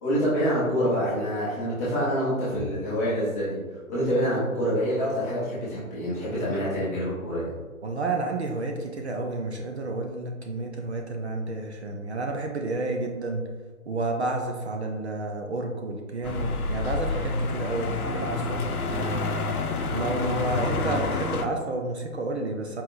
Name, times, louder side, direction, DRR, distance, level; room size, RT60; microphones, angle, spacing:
voice 1, 0.0-3.6 3.9-7.5, equal, 10° left, -10 dB, 0.7 m, -26 dB
voice 2, 7.8-13.5 13.9-19.3 19.9-22.8, right 2 dB, 50° right, 2 dB, 0.5 m, -30 dB
sound 1, 16.2-21.5, left 3 dB, 80° left, 0.7 m, -28 dB
4.6 x 3.5 x 2.5 m, 1.4 s
hypercardioid pair, 150°, 43 cm